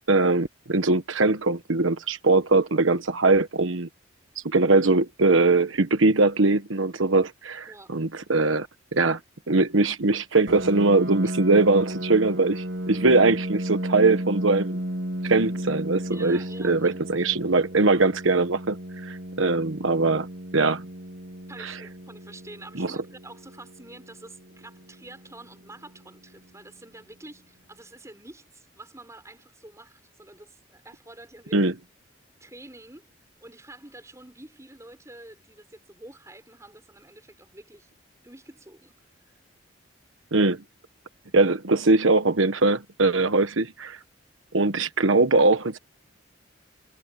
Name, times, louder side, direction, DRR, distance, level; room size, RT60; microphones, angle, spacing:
voice 1, 0.1-3.9 4.4-8.7 8.9-9.2 9.5-14.8 15.2-18.8 19.0-20.3 20.5-20.8 21.6-21.7 22.8-22.9 31.5-31.7 40.3-40.6 41.3-44.0 44.5-45.8, right 3 dB, 90° right, 1.2 m, -21 dB
Piano, 10.5-25.9, equal, 55° right, 1.3 m, -34 dB
voice 2, 16.1-17.2 21.5-31.7 32.4-33.1 33.4-37.9 38.2-39.0, right 2 dB, 15° right, 6.3 m, -47 dB
head